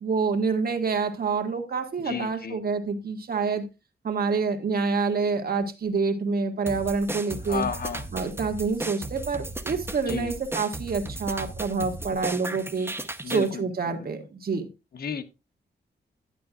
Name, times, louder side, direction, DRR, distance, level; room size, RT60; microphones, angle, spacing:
voice 1, 0.0-3.7 4.0-7.6 8.1-12.9 13.3-14.7, right 4 dB, 55° right, 1.7 m, -27 dB
voice 2, 2.0-2.6 7.4-8.1 10.1-10.3 13.2-14.1 14.9-15.2, left 6 dB, 55° left, 1.1 m, -33 dB
sound 1, 6.7-13.5, right 2 dB, 15° right, 0.8 m, -36 dB
11.0 x 10.5 x 2.4 m
wide cardioid pair, 115°, 18 cm